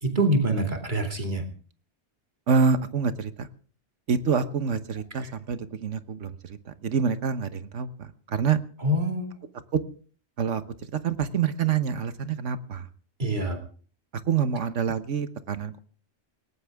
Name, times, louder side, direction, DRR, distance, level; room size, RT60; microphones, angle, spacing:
voice 1, 0.0-1.4 5.2-5.3 8.8-9.3 13.2-13.6, right 1 dB, 40° right, 3 dB, 2.8 m, -25 dB
voice 2, 2.5-3.5 4.1-8.6 9.7-9.8 10.4-10.6 11.0-12.9 14.3-15.8, right 6 dB, 85° right, 12 dB, 1.4 m, -26 dB
19.0 x 18.0 x 3.6 m, 0.42 s
omnidirectional pair, 1.2 m